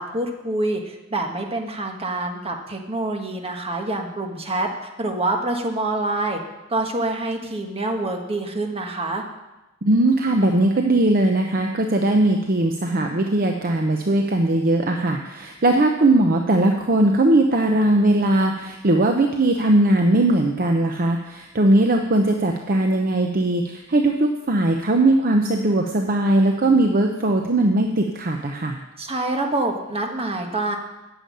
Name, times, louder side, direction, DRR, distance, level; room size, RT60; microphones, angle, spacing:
voice 1, 0.0-4.7 5.0-6.4 6.7-9.2 29.0-30.8, right 2 dB, 30° right, 3 dB, 1.4 m, -26 dB
voice 2, 9.8-28.8, right 1 dB, 45° right, 3 dB, 0.7 m, -19 dB
9.1 x 7.1 x 8.6 m, 1.0 s
head